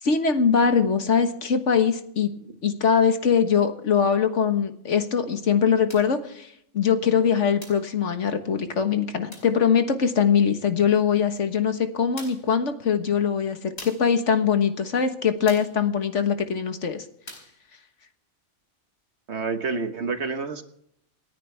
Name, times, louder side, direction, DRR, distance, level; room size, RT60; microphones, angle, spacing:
voice 1, 0.0-2.3 2.6-6.5 6.7-17.0, left 7 dB, 80° left, 7 dB, 1.7 m, -22 dB
sound 1, 5.9-6.2 7.6-7.9 9.3-9.6 11.4-11.5 12.2-12.5 13.8-14.1 15.5-15.8 17.3-17.6, left 1 dB, 60° left, 4.9 m, -43 dB
voice 2, 19.3-20.6, right 4 dB, 70° right, 7 dB, 1.6 m, -28 dB
28.0 x 10.0 x 3.4 m, 0.72 s
omnidirectional pair, 1.2 m